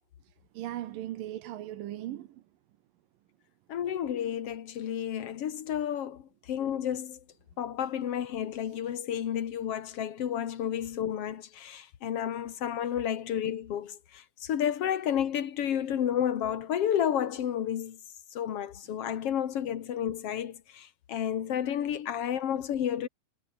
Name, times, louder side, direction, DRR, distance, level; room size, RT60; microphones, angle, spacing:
voice 1, 0.5-2.4 14.8-14.9 18.8-19.0, right 13 dB, 70° right, 2.5 m, -38 dB
voice 2, 3.7-7.2 7.6-18.0 18.3-23.1, left 9 dB, 60° left, 1.6 m, -31 dB
omnidirectional pair, 4.7 m